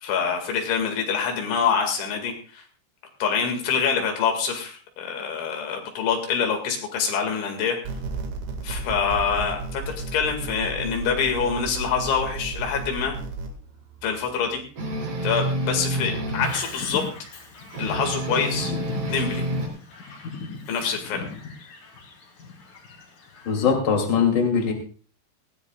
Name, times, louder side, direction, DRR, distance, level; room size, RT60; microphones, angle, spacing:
voice 1, 0.0-2.6 3.2-7.8 8.6-13.2 14.0-14.6 15.2-17.0 17.8-18.7 19.1-19.4 20.7-21.2, left 6 dB, 75° left, 3 dB, 4.5 m, -25 dB
sound 1, 7.9-13.5, right 3 dB, 90° right, 4.6 m, -33 dB
sound 2, 14.8-16.6 17.7-19.7, right 1 dB, 40° right, 4.8 m, -28 dB
Bird vocalization bird call bird song, 16.4-23.7, left 4 dB, 50° left, 4.2 m, -38 dB
voice 2, 23.4-24.7, left 6 dB, 30° left, 2 dB, 2.6 m, -21 dB
19.5 x 17.0 x 2.4 m, 0.40 s
omnidirectional pair, 5.4 m